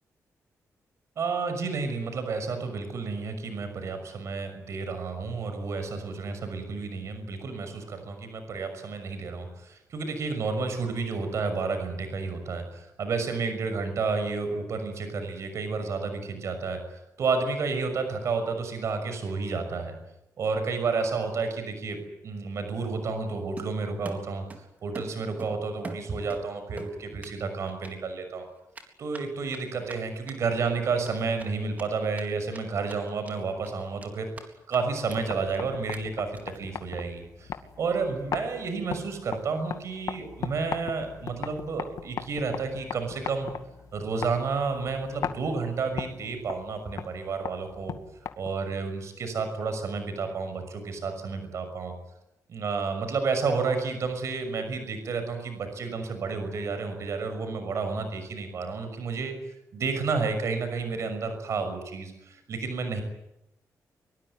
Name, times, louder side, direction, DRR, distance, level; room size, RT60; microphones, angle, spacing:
voice 1, 1.2-19.9 20.4-24.4 24.8-28.4 29.0-34.3 34.7-43.5 43.9-47.9 48.4-51.9 52.5-59.3 59.7-63.0, right 4 dB, 55° right, 8 dB, 6.2 m, -31 dB
Run, 23.6-24.7 24.9-26.4 26.8-27.4 27.7-27.9 28.7-32.2 32.5-32.6 32.9-33.4 33.6-34.5 34.7-34.8 35.1-35.2 35.5-35.6 35.9-36.0 36.3-36.6, right 3 dB, 25° right, 3.9 m, -43 dB
sound 1, 35.0-48.8, left 8 dB, 70° left, 2.1 m, -39 dB
24.0 x 23.5 x 9.7 m, 0.86 s
wide cardioid pair, 175°, 6 cm